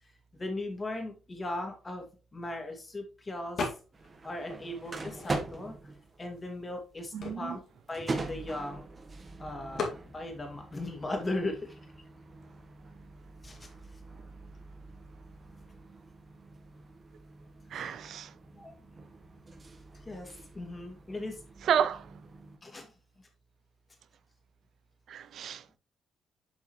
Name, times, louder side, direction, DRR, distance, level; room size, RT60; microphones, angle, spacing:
voice 1, 0.3-3.6 4.2-5.7 6.2-7.6 7.9-8.8 9.4-11.6 13.4-13.6 17.7-18.0 18.6-18.7 20.1-20.3 20.5-21.3 22.6-22.9, left 2 dB, 25° left, 2.2 m, -37 dB
sound 1, 3.6-4.2 4.5-5.7 6.4-6.5 6.7-8.9 9.8-10.1, left 4 dB, 60° left, 2.2 m, -38 dB
sound 2, 3.9-22.6, right 3 dB, 30° right, 1.3 m, -43 dB
voice 2, 7.1-7.6 17.7-18.3 21.6-22.1 25.1-25.8, right 8 dB, 65° right, 0.4 m, -31 dB
7.5 x 5.5 x 3.1 m
cardioid pair, 90°, 0 cm